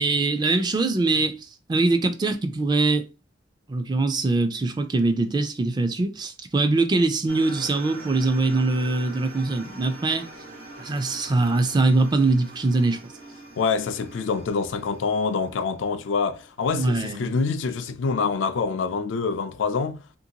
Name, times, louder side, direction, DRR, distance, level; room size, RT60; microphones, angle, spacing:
voice 1, 0.0-1.4 1.7-3.0 3.7-10.2 10.8-13.1 16.7-17.3, right 3 dB, 25° right, 0.4 m, -23 dB
sound 1, 7.3-16.7, right 2 dB, 85° right, 1.1 m, -43 dB
voice 2, 13.6-20.0, left 5 dB, 85° left, 0.4 m, -26 dB
2.9 x 2.6 x 2.8 m
head